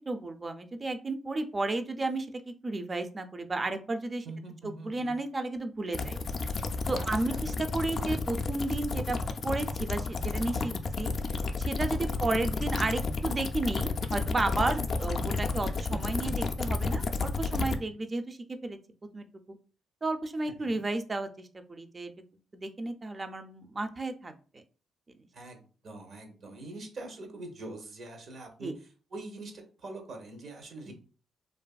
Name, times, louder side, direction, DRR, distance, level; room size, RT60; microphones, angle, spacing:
voice 1, 0.0-4.3 4.6-6.2 6.9-9.2 9.4-11.1 11.6-18.8 19.1-19.3 20.0-22.1 22.6-24.6 28.6-28.7 30.9-31.0, right 2 dB, 30° right, 8 dB, 0.4 m, -33 dB
voice 2, 4.2-5.2 6.9-7.4 14.6-15.0 17.7-17.9 20.5-20.8 25.3-30.9, right 2 dB, 65° right, 3 dB, 0.8 m, -44 dB
sound 1, 5.9-17.8, left 4 dB, 55° left, 0.3 m, -31 dB
2.6 x 2.4 x 2.3 m, 0.37 s
cardioid pair, 75°, 0 cm